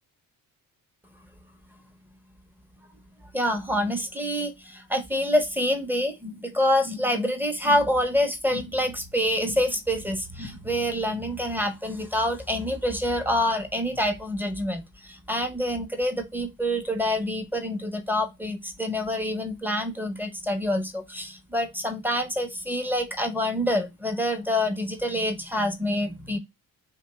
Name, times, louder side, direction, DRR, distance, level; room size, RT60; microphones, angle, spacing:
voice 1, 3.3-26.4, left 1 dB, 5° right, 0.5 m, -26 dB
2.7 x 2.2 x 2.8 m
cardioid pair, 70°, 38 cm